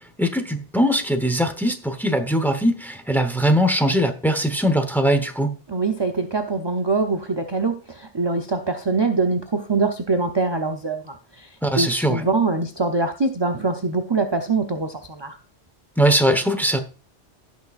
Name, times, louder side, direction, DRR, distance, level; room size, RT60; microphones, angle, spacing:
voice 1, 0.2-5.5 11.6-12.3 16.0-16.8, equal, ahead, 1.0 m, -21 dB
voice 2, 5.7-11.5 11.7-15.4, right 3 dB, 25° right, 0.7 m, -23 dB
17.0 x 6.1 x 2.5 m
omnidirectional pair, 1.2 m